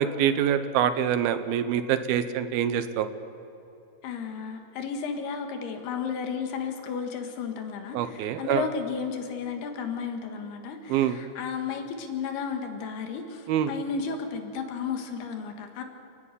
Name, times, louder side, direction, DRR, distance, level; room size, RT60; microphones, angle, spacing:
voice 1, 0.0-3.1 7.9-8.6 10.9-11.2 13.5-13.7, right 9 dB, 75° right, 11 dB, 2.6 m, -25 dB
voice 2, 4.0-15.8, left 6 dB, 80° left, 5 dB, 3.6 m, -33 dB
29.5 x 9.8 x 9.9 m, 3.0 s
omnidirectional pair, 4.6 m